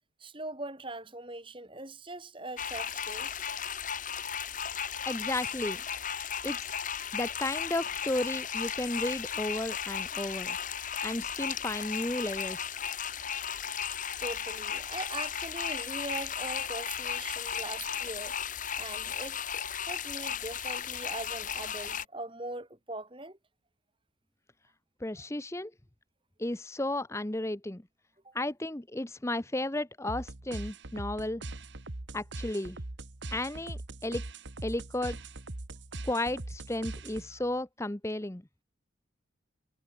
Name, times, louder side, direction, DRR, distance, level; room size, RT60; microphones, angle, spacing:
voice 1, 0.2-3.5 13.7-13.9 14.2-19.4 19.9-23.4 28.2-28.3 37.3-37.4, right 2 dB, 25° right, 3.4 m, -41 dB
sound 1, 2.6-22.0, left 8 dB, 40° left, 1.7 m, -35 dB
voice 2, 5.0-5.8 6.4-6.7 7.1-10.6 11.0-12.7 25.0-25.7 26.4-27.8 28.3-31.4 32.1-32.8 33.3-34.2 34.6-35.2 36.0-38.4, left 1 dB, 15° left, 0.8 m, -33 dB
sound 2, 30.1-37.5, right 2 dB, 65° right, 1.5 m, -41 dB
head